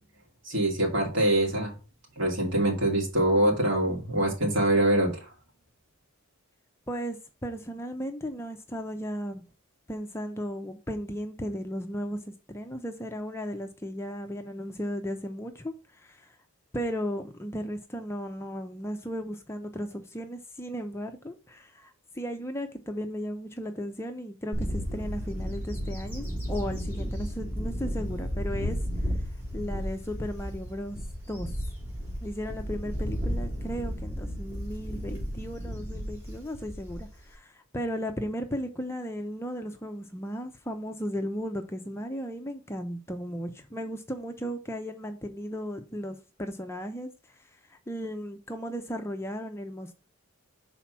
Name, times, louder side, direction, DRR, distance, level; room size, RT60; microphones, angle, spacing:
voice 1, 0.4-1.7 2.2-5.3, right 1 dB, 60° right, 2.5 m, -24 dB
voice 2, 6.9-9.4 9.9-12.2 12.5-16.4 16.7-28.8 29.5-31.0 31.3-31.5 32.2-47.4 47.7-50.0, equal, 10° left, 0.5 m, -35 dB
Bird / Wind, 24.5-37.3, equal, 10° right, 3.0 m, -33 dB
5.7 x 4.1 x 5.8 m
head